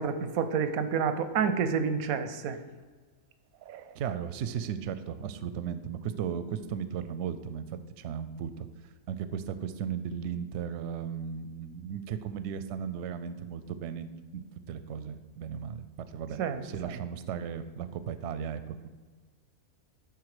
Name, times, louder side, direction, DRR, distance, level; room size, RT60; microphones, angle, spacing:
voice 1, 0.0-2.6 3.7-3.8 16.4-17.0, right 6 dB, 90° right, 10 dB, 1.1 m, -29 dB
voice 2, 4.0-8.7 9.1-18.9, right 8 dB, 65° right, 12 dB, 0.8 m, -36 dB
10.5 x 4.0 x 4.9 m, 1.4 s
omnidirectional pair, 1.5 m